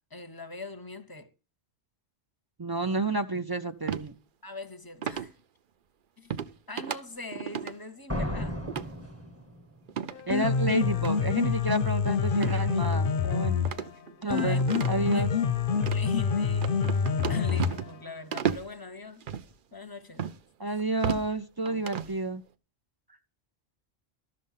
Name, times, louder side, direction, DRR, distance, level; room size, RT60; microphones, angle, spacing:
voice 1, 0.0-1.3 4.4-5.3 6.2-8.6 14.2-14.6 15.0-15.3 15.8-16.9 17.3-19.3 19.7-20.3, left 4 dB, 25° left, 0.7 m, -41 dB
voice 2, 2.6-4.1 10.3-13.7 14.2-15.3 20.6-22.4, right 2 dB, 35° right, 0.4 m, -30 dB
sound 1, 3.9-4.1 5.0-5.3 6.3-6.5 6.8-7.0 7.3-7.7 8.7-8.9 9.9-10.2 11.0-11.1 12.3-12.6 12.9-13.0 13.6-15.2 15.8-16.0 16.6-18.0 18.3-18.7 19.2-19.5 20.2-20.4 20.8-21.3 21.7-22.1, right 8 dB, 55° right, 0.7 m, -33 dB
sound 2, 8.1-9.9, left 1 dB, 15° right, 1.1 m, -34 dB
Piano, 10.1-18.1, left 6 dB, 60° left, 0.8 m, -27 dB
12.5 x 6.5 x 5.5 m
omnidirectional pair, 1.2 m